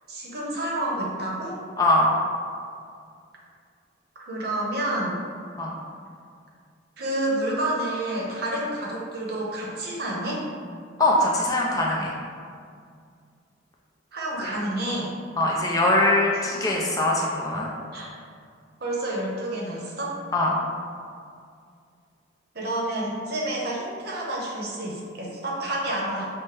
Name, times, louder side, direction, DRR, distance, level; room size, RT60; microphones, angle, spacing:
voice 1, 0.1-1.6 4.2-5.2 7.0-10.5 14.1-15.1 16.5-16.6 17.9-18.1 18.8-20.2 22.5-26.4, right 1 dB, 55° right, -3 dB, 0.8 m, -29 dB
voice 2, 1.8-2.1 5.6-5.7 11.0-12.1 14.4-14.6 15.4-17.7 20.3-20.6, left 1 dB, 20° left, -2 dB, 0.3 m, -22 dB
5.7 x 2.1 x 3.2 m, 2.2 s
head